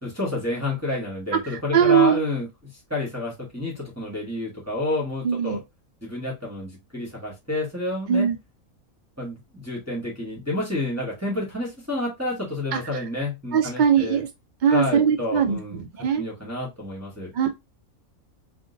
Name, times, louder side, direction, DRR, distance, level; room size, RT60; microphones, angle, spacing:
voice 1, 0.0-2.5 2.9-5.6 6.0-8.3 9.2-14.2 14.7-15.8 16.1-17.3, left 2 dB, 10° right, 1.3 m, -29 dB
voice 2, 1.3-2.2 5.2-5.6 8.1-8.4 12.7-13.0 13.5-14.3 14.6-16.2 17.3-17.5, right 7 dB, 75° right, 0.4 m, -21 dB
3.6 x 2.5 x 2.6 m
omnidirectional pair, 1.4 m